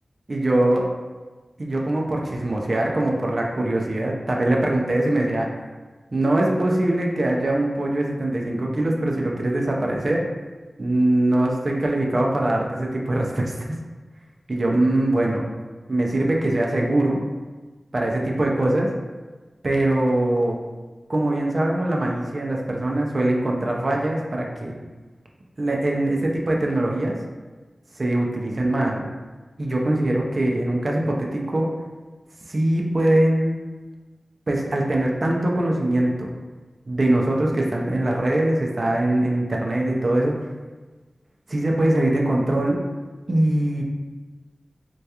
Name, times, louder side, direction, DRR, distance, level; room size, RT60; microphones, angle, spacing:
voice 1, 0.3-0.9 1.6-5.5 6.1-10.2 10.8-13.7 14.5-15.4 15.9-17.2 17.9-18.9 19.6-20.6 21.1-24.8 25.6-27.2 27.9-29.1 29.6-31.7 32.5-33.6 34.5-36.3 36.9-40.4 41.5-42.8 43.3-43.8, right 1 dB, 55° right, -1 dB, 0.4 m, -22 dB
2.2 x 2.2 x 2.7 m, 1.3 s
cardioid pair, 50°, 0 cm